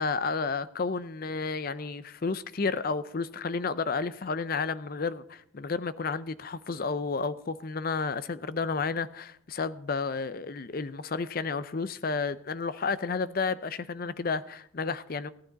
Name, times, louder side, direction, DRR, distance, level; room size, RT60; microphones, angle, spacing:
voice 1, 0.0-15.3, left 4 dB, 45° left, 0.5 m, -31 dB
15.5 x 11.5 x 4.0 m
head